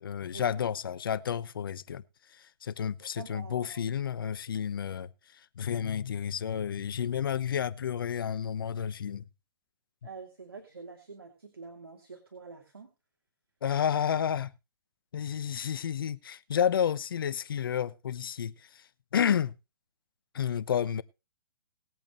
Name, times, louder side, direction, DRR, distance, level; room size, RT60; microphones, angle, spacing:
voice 1, 0.0-2.0 2.3-5.1 5.6-9.2 13.6-14.5 15.1-18.8 19.1-19.5 20.3-21.0, left 8 dB, 70° left, 1.0 m, -31 dB
voice 2, 3.2-3.8 10.0-12.9, right 4 dB, 90° right, 2.7 m, -46 dB
20.0 x 8.6 x 3.0 m
hypercardioid pair, 130°, 12 cm